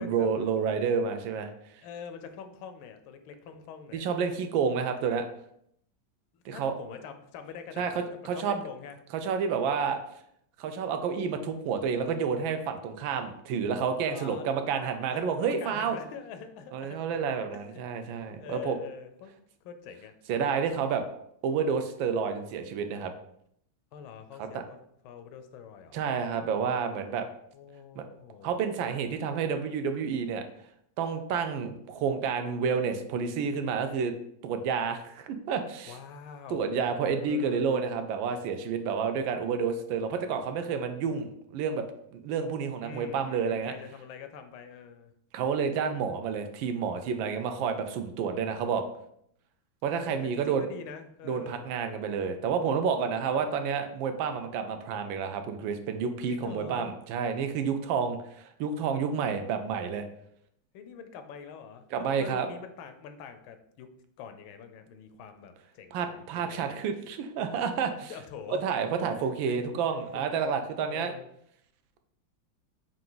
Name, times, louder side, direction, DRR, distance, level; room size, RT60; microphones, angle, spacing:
voice 1, 0.0-1.5 3.9-5.2 6.4-6.7 7.8-8.6 9.2-10.0 10.6-16.0 16.7-18.8 20.3-21.0 21.4-23.1 24.5-24.6 25.9-27.2 28.0-28.1 28.4-30.4 31.0-34.1 34.4-35.9 36.5-41.8 42.1-43.7 45.3-48.8 49.8-50.7 51.2-60.1 61.9-62.5 65.9-68.1 68.5-71.1, right 6 dB, 80° right, 7 dB, 1.3 m, -29 dB
voice 2, 1.8-4.1 6.3-9.0 14.1-14.6 15.1-17.0 17.5-17.8 18.4-19.3 19.6-20.1 23.9-24.8 25.0-26.0 27.5-28.6 35.9-36.7 37.1-37.7 42.8-45.1 50.0-51.7 53.0-53.5 56.3-56.9 60.7-63.9 64.2-66.8 68.0-69.5 70.1-70.2 70.8-71.3, left 7 dB, 85° left, 8 dB, 1.4 m, -45 dB
5.6 x 2.5 x 3.8 m, 0.72 s
omnidirectional pair, 2.2 m